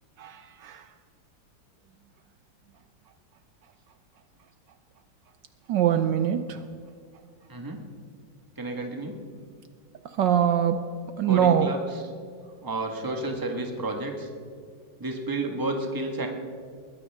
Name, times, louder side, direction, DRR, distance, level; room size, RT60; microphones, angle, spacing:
voice 1, 0.2-0.8 5.7-6.6 10.2-10.8 11.2-11.7, right 9 dB, 70° right, 10 dB, 1.2 m, -23 dB
voice 2, 7.5-7.8 8.6-9.2 11.2-12.0 12.6-14.3 15.0-16.3, right 2 dB, 10° right, 3 dB, 1.3 m, -31 dB
21.0 x 15.5 x 3.6 m, 2.2 s
omnidirectional pair, 2.2 m